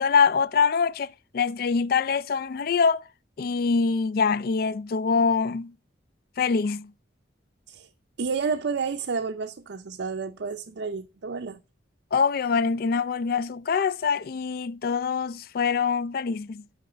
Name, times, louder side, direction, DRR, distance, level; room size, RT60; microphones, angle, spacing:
voice 1, 0.0-3.0 3.4-5.7 6.4-6.9 12.1-16.6, left 5 dB, 50° left, 0.3 m, -24 dB
voice 2, 8.2-11.6, right 5 dB, 65° right, 0.5 m, -30 dB
7.9 x 5.3 x 5.0 m
head